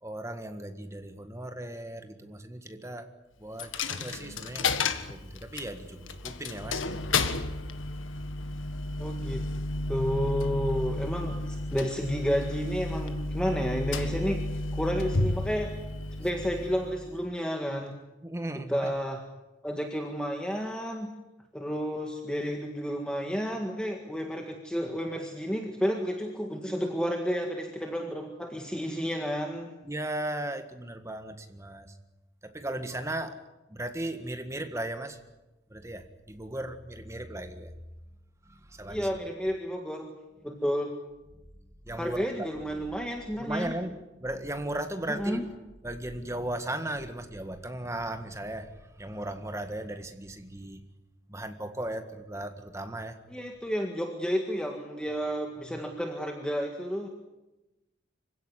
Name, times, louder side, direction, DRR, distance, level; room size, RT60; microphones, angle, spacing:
voice 1, 0.0-3.1 3.4-7.0 9.9-10.0 18.2-18.9 29.8-31.9 32.4-33.4 33.7-35.2 35.7-37.7 38.5-39.1 41.9-42.5 43.4-45.5 45.8-48.7 49.0-50.8 51.3-53.2 55.7-55.8, right 1 dB, 15° right, 7 dB, 1.7 m, -36 dB
Coin (dropping), 3.6-17.3, left 2 dB, 80° left, 1.6 m, -32 dB
voice 2, 9.0-9.4 9.9-14.4 14.7-15.7 16.2-17.9 18.5-19.2 19.6-21.2 21.5-29.7 32.6-32.7 38.9-40.1 40.4-40.9 42.0-43.7 45.1-45.4 53.3-57.1, equal, 5° left, 2 dB, 1.8 m, -31 dB
25.5 x 16.5 x 9.8 m, 1.0 s
head